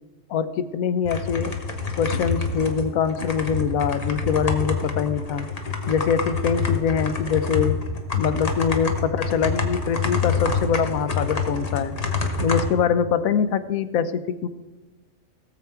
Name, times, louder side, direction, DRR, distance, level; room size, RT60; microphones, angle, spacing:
voice 1, 0.3-1.6 2.0-5.5 5.9-7.8 8.1-12.0 12.4-14.5, left 7 dB, 90° left, 12 dB, 1.1 m, -24 dB
sound 1, 1.0-12.6, left 4 dB, 30° left, 1.0 m, -27 dB
17.5 x 7.3 x 4.5 m, 1.2 s
omnidirectional pair, 1.4 m